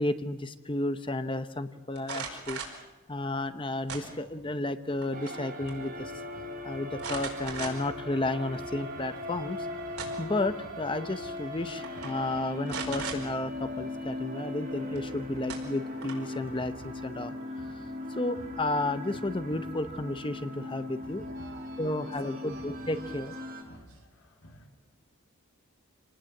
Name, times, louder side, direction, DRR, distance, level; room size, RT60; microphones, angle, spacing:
voice 1, 0.0-2.6 3.1-6.1 6.6-9.7 10.2-17.6 18.1-21.2 21.8-23.3, left 2 dB, 20° left, 11 dB, 0.8 m, -32 dB
sound 1, 2.0-2.8 3.9-4.5 4.9-5.4 5.7-5.8 7.0-8.0 8.5-8.6 9.6-10.4 11.4-11.5 11.8-12.1 12.7-13.2 14.9-15.0 15.5-16.3, right 5 dB, 90° right, 4.9 m, -38 dB
sound 2, 5.1-23.6, left 1 dB, 40° right, 3.0 m, -39 dB
sound 3, 5.6-24.7, equal, 65° left, 2.9 m, -53 dB
voice 2, 20.9-22.7 23.0-23.2 23.5-24.1, right 2 dB, 70° right, 5 dB, 3.0 m, -54 dB
26.0 x 19.0 x 7.8 m, 1.1 s
head